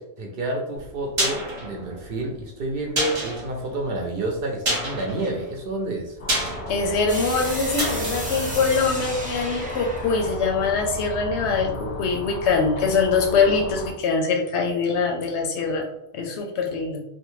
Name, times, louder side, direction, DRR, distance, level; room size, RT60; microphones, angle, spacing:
voice 1, 0.0-6.2, right 2 dB, 65° right, 1 dB, 0.7 m, -29 dB
sound 1, 0.8-9.6 9.9-10.0, right 1 dB, 30° right, 0.8 m, -30 dB
sound 2, 6.2-13.9, equal, 50° left, 0.5 m, -34 dB
voice 2, 6.7-17.0, left 4 dB, 85° left, 3 dB, 0.9 m, -23 dB
sound 3, 7.1-11.9, equal, 10° right, 0.4 m, -34 dB
2.6 x 2.1 x 3.0 m, 0.83 s
omnidirectional pair, 1.1 m